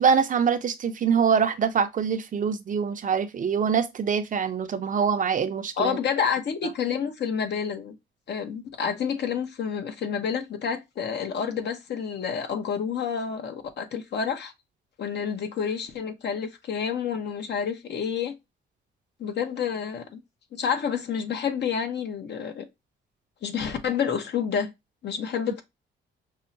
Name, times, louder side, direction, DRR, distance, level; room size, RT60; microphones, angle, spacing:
voice 1, 0.0-6.0, right 6 dB, 40° right, 0.5 m, -24 dB
voice 2, 5.8-7.9 8.3-14.5 15.0-18.3 19.2-20.2 20.5-22.6 23.4-24.7 25.0-25.6, left 7 dB, 60° left, 0.9 m, -29 dB
5.4 x 2.1 x 2.6 m
cardioid pair, 90°, 20 cm